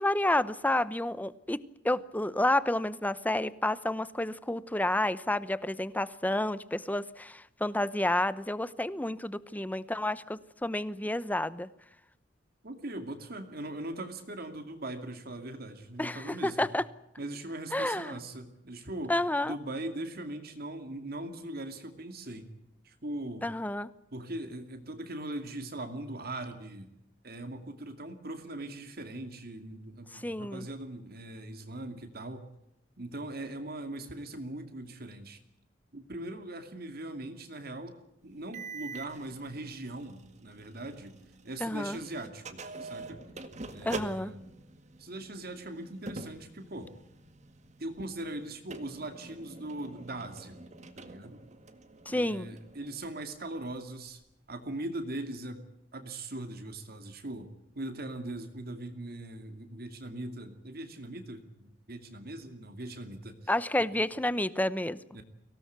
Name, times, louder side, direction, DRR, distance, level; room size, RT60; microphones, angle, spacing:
voice 1, 0.0-11.7 16.0-16.8 17.7-18.2 19.1-19.5 23.4-23.9 30.1-30.7 41.6-42.0 43.8-44.3 52.1-52.5 63.5-65.0, left 1 dB, 10° left, 16 dB, 0.8 m, -30 dB
voice 2, 12.6-16.7 17.2-19.2 19.4-22.5 22.8-23.5 24.1-26.9 27.2-32.5 33.0-35.4 35.9-38.0 38.2-41.1 41.4-43.2 43.7-44.6 45.0-46.9 47.8-50.6 51.0-51.4 52.1-54.2 54.5-55.7 55.9-63.5 63.8-63.9 65.1-65.2, right 1 dB, 55° right, 6 dB, 2.5 m, -40 dB
sound 1, 38.5-41.6 41.9-53.1, right 3 dB, 40° right, 1.9 m, -46 dB
23.5 x 18.0 x 8.1 m, 0.83 s
head